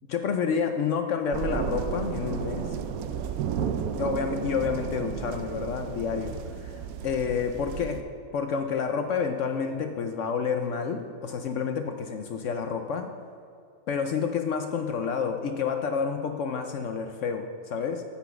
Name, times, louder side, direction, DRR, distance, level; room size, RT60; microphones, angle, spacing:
voice 1, 0.1-2.7 4.0-6.3 6.6-8.0 8.3-13.1 13.9-18.0, left 6 dB, 65° left, 6 dB, 0.7 m, -29 dB
sound 1, 1.3-8.0, right 7 dB, 70° right, 1.0 m, -33 dB
8.3 x 5.9 x 6.9 m, 2.5 s
omnidirectional pair, 1.7 m